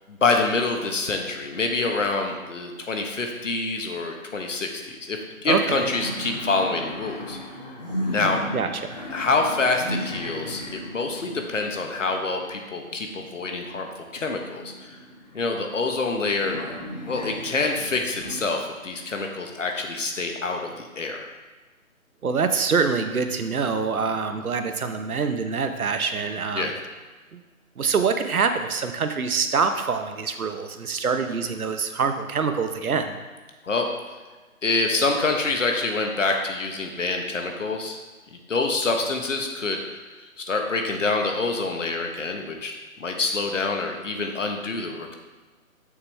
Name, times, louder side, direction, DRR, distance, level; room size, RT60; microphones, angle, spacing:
voice 1, 0.1-7.4 8.1-8.4 9.1-13.9 14.1-15.0 15.3-16.6 17.1-21.3 26.5-26.7 33.6-33.9 34.6-38.0 38.5-39.8 40.4-42.7 43.0-45.1, left 3 dB, 60° left, 3 dB, 1.2 m, -26 dB
sound 1, 3.8-4.6 4.8-4.9 5.3-13.5 14.1-16.1 16.4-18.4, left 1 dB, 30° left, 1.1 m, -36 dB
voice 2, 5.4-5.9 8.5-9.0 22.2-26.7 27.3-27.4 27.8-33.2, right 5 dB, 80° right, 7 dB, 1.0 m, -25 dB
7.1 x 6.8 x 3.4 m, 1.3 s
hypercardioid pair, 175°, 43 cm